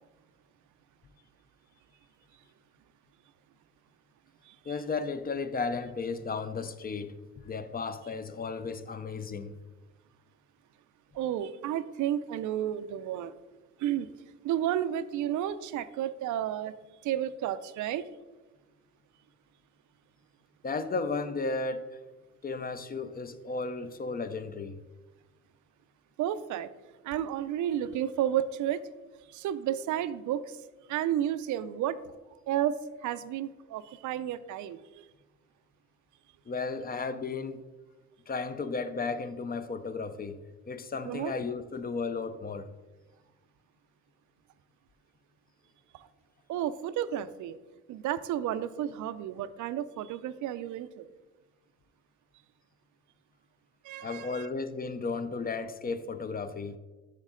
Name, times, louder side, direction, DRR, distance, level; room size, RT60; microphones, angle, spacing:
voice 1, 4.6-7.2 7.4-9.6 20.6-22.0 22.4-24.8 36.5-37.6 38.3-42.7 54.0-56.8, left 4 dB, 30° left, 0.5 m, -34 dB
voice 2, 11.1-13.3 13.8-14.1 14.4-16.7 17.0-18.0 26.2-26.7 27.0-28.8 29.3-30.6 30.9-32.0 32.5-35.1 41.0-41.3 45.9-46.1 46.5-47.6 47.9-51.1 53.8-54.5, right 11 dB, 80° right, 0.5 m, -32 dB
6.5 x 6.1 x 3.7 m
cardioid pair, 90°, 30 cm